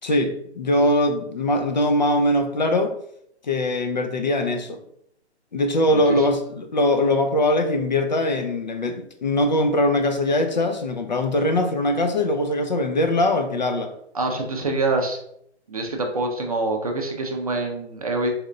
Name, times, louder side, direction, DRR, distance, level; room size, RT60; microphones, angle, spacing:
voice 1, 0.0-2.9 3.4-4.8 5.5-13.9, left 1 dB, 45° left, 0.4 m, -21 dB
voice 2, 5.9-6.3 14.1-15.2 15.7-18.3, right 2 dB, 35° right, 0.5 m, -25 dB
4.1 x 2.3 x 3.7 m
hypercardioid pair, 160°, 34 cm